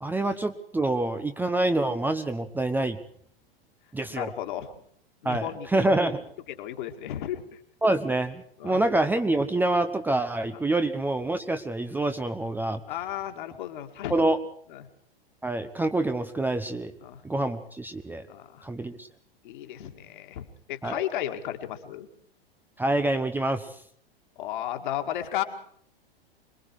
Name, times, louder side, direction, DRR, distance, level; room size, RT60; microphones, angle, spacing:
voice 1, 0.0-3.0 3.9-4.3 5.2-6.2 7.8-12.8 14.1-14.4 15.4-16.9 17.2-18.2 18.6-19.1 20.8-21.0 22.8-23.7, right 2 dB, 5° right, 8 dB, 0.8 m, -26 dB
voice 2, 4.1-4.7 5.2-5.7 6.6-7.4 8.6-8.8 10.5-10.6 12.9-14.1 14.7-14.9 17.0-17.2 18.3-18.6 19.4-22.1 24.4-25.4, left 12 dB, 55° left, 6 dB, 2.2 m, -34 dB
25.5 x 21.5 x 4.8 m, 0.64 s
figure-of-eight pair, 95°, 30 cm